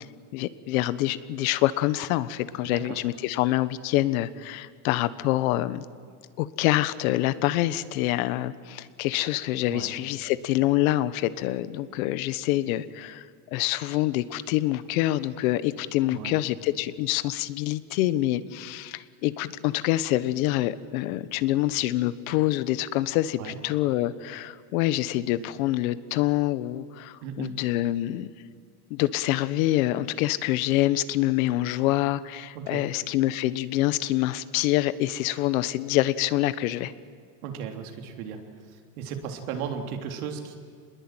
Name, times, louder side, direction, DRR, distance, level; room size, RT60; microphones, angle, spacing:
voice 1, 0.3-5.8 6.4-13.3 13.5-28.3 28.9-36.9, left 15 dB, 65° left, 15 dB, 1.3 m, -26 dB
voice 2, 2.6-3.0 9.7-9.9 16.1-16.3 23.4-23.6 27.2-27.6 32.6-32.8 37.4-38.4 38.7-40.6, right 7 dB, 70° right, 4 dB, 3.5 m, -36 dB
27.0 x 21.0 x 9.1 m, 2.1 s
cardioid pair, 180°, 45 cm